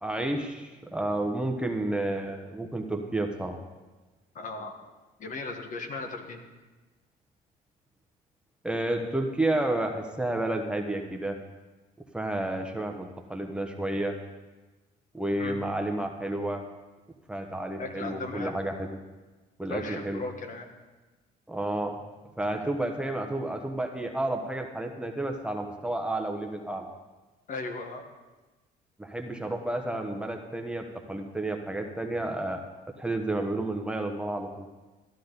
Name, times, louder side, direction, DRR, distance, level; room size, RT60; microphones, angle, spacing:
voice 1, 0.0-3.6 8.6-11.4 12.1-14.1 15.1-16.6 17.3-19.0 19.6-20.2 21.5-22.0 22.4-26.9 29.0-32.6 33.0-34.7, right 1 dB, 5° right, 3 dB, 1.0 m, -31 dB
voice 2, 4.3-4.8 5.2-6.4 15.4-15.7 17.8-18.6 19.7-20.7 27.5-28.1, left 3 dB, 50° left, 5 dB, 1.5 m, -37 dB
14.0 x 11.5 x 4.0 m, 1.2 s
cardioid pair, 110°, 17 cm